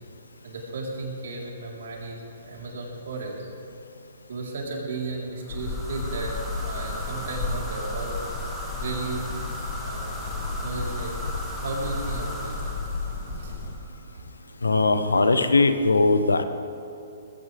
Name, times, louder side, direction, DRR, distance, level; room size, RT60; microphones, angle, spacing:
voice 1, 0.4-3.5 4.3-8.2 8.8-9.3 9.8-10.3 10.5-11.1 11.6-12.5 13.4-13.5, right 3 dB, 65° right, -2 dB, 4.1 m, -34 dB
sound 1, 5.4-14.0, equal, 5° left, 3.2 m, -38 dB
sound 2, 5.5-13.8, left 3 dB, 50° left, 2.1 m, -33 dB
voice 2, 14.6-16.4, left 3 dB, 90° left, 9 dB, 1.1 m, -20 dB
20.0 x 16.0 x 3.5 m, 2.9 s
hypercardioid pair, 130°, 0 cm